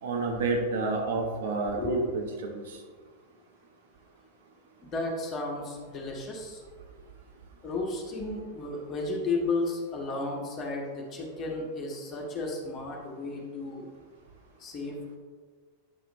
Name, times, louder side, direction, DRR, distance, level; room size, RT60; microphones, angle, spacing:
voice 1, 0.0-2.8, right 3 dB, 60° right, 1 dB, 1.3 m, -29 dB
voice 2, 1.8-2.1 4.8-6.6 7.6-13.9 14.6-15.2, left 2 dB, 30° left, -1 dB, 1.9 m, -33 dB
9.5 x 6.0 x 3.2 m, 1.5 s
figure-of-eight pair, 90°, 0 cm